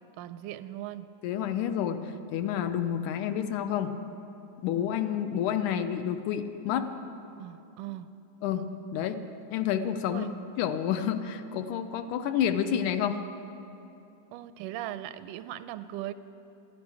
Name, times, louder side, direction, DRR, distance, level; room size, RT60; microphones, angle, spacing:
voice 1, 0.2-1.2 7.4-8.2 10.1-10.3 14.3-16.1, right 13 dB, 90° right, 13 dB, 2.1 m, -39 dB
voice 2, 1.2-2.0 2.3-4.0 4.6-6.9 8.4-9.2 9.5-10.3 10.6-13.2, left 9 dB, 80° left, 9 dB, 2.1 m, -29 dB
27.5 x 11.0 x 4.8 m, 2.8 s
omnidirectional pair, 3.6 m